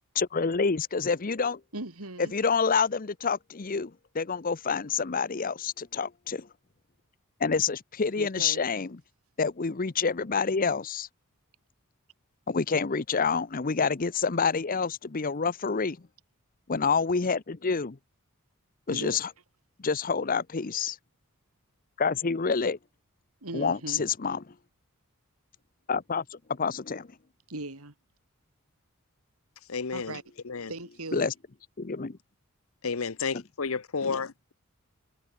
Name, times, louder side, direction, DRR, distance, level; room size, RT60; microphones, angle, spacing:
voice 1, 0.1-1.6 2.2-6.5 7.4-9.0 9.4-11.1 12.5-16.0 16.7-18.0 18.9-19.3 19.8-21.0 22.0-22.8 23.5-24.5 25.9-27.1 31.1-31.3 31.8-32.2, left 5 dB, 40° left, 0.7 m, -28 dB
voice 2, 1.7-2.3 8.2-8.6 18.9-19.2 23.4-24.0 27.5-27.9 29.9-30.2 30.7-31.2, right 2 dB, 80° right, 3.7 m, -38 dB
voice 3, 29.7-30.2 30.4-30.7 32.8-34.5, left 5 dB, 70° left, 0.9 m, -31 dB
head